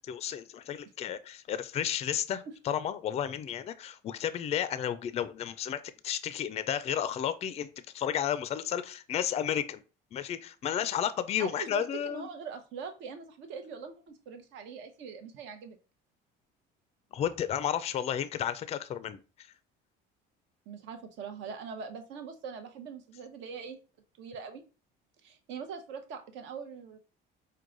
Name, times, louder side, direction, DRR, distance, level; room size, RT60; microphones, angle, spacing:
voice 1, 0.1-7.7 7.9-9.8 10.1-12.3 17.1-19.2, left 9 dB, 30° left, 0.4 m, -32 dB
voice 2, 11.4-15.8 20.7-23.8 24.2-24.6 25.2-27.0, right 6 dB, 65° right, 0.9 m, -42 dB
4.6 x 2.2 x 3.8 m
cardioid pair, 135°, 20 cm